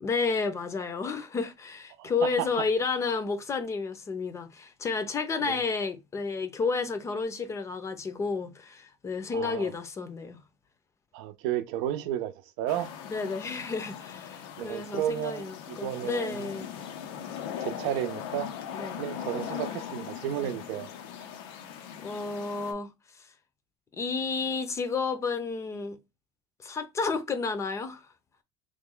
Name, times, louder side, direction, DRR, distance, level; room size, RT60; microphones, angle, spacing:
voice 1, 0.0-10.4 13.1-16.7 18.7-19.1 20.4-20.6 22.0-22.9 23.2-23.3 23.9-26.0 26.6-28.1, left 4 dB, 25° left, 0.5 m, -31 dB
voice 2, 2.0-2.5 5.5-5.6 9.3-9.7 11.1-12.9 14.6-16.5 17.6-18.5 19.0-20.9, right 11 dB, 75° right, 0.5 m, -32 dB
sound 1, 12.7-22.7, left 9 dB, 85° left, 0.6 m, -40 dB
3.1 x 2.2 x 3.7 m
cardioid pair, 130°, 13 cm